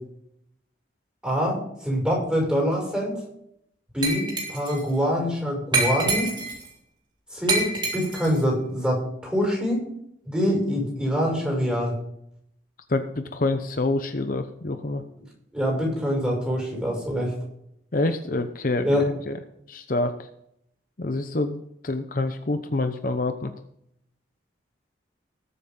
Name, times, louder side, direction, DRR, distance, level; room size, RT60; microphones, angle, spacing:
voice 1, 1.2-3.2 3.9-6.3 7.3-9.8 10.2-11.9 15.5-17.4 18.8-19.1, equal, 5° right, -2 dB, 6.4 m, -25 dB
Glass, 4.0-4.8 5.7-6.7 7.5-8.4, right 3 dB, 25° right, 3.2 m, -26 dB
voice 2, 12.9-15.0 17.9-18.9 19.3-19.4 19.7-20.1 21.0-23.5, left 2 dB, 50° left, 8 dB, 0.8 m, -26 dB
19.5 x 8.3 x 3.8 m, 0.74 s
head